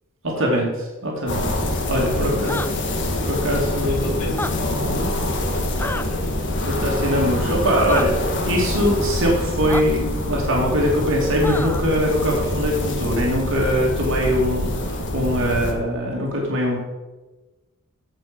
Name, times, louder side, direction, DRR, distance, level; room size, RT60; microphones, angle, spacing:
voice 1, 0.4-1.5 1.9-2.6 3.2-4.3 6.6-8.2 8.5-16.8, equal, 65° right, -2 dB, 2.6 m, -22 dB
sound 1, 1.3-15.7, left 1 dB, 60° left, 1.6 m, -25 dB
voice 2, 1.9-2.6 3.8-6.2, left 1 dB, 85° left, 2 dB, 2.5 m, -32 dB
sound 2, 2.4-2.7 4.3-4.5 5.8-6.1 7.9-8.1 9.7-9.8 11.4-11.9, left 2 dB, 10° left, 0.4 m, -28 dB
15.5 x 5.6 x 5.2 m, 1.2 s
head